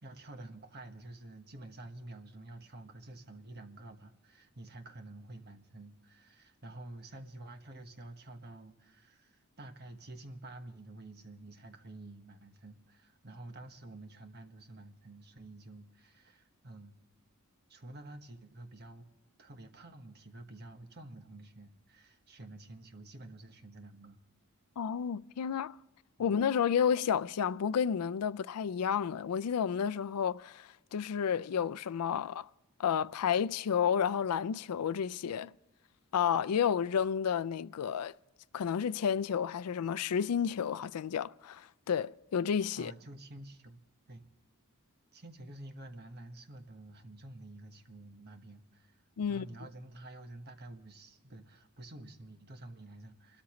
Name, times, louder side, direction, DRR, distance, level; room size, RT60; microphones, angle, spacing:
voice 1, 0.0-17.0 17.7-19.1 19.4-24.2 26.2-26.4 42.8-43.8 44.1-44.3 45.1-49.0 49.3-53.4, right 2 dB, 45° right, 1.3 m, -49 dB
voice 2, 24.8-25.8 26.2-32.5 32.8-35.5 36.1-38.1 38.5-42.9 49.2-49.5, left 7 dB, 80° left, 0.4 m, -31 dB
29.5 x 13.0 x 3.1 m
head